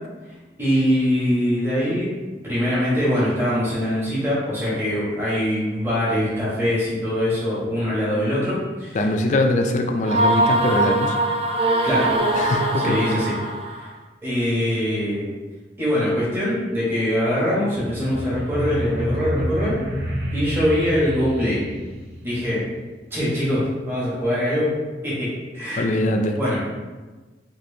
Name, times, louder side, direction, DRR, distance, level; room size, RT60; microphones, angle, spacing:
voice 1, 0.6-2.2 2.4-9.0 11.8-12.1 12.8-13.3 13.7-13.9 14.2-15.3 15.8-19.8 20.3-21.6 22.2-22.6 23.1-24.7 25.0-25.9 26.4-26.6, equal, 15° right, -9 dB, 1.0 m, -23 dB
voice 2, 8.9-11.1 12.3-13.0 25.8-26.4, left 1 dB, 40° left, 4 dB, 0.3 m, -22 dB
sound 1, 10.0-13.9, right 1 dB, 35° right, 0.4 m, -22 dB
sound 2, 17.7-22.7, equal, 65° right, 0.7 m, -29 dB
4.1 x 2.6 x 2.7 m, 1.2 s
head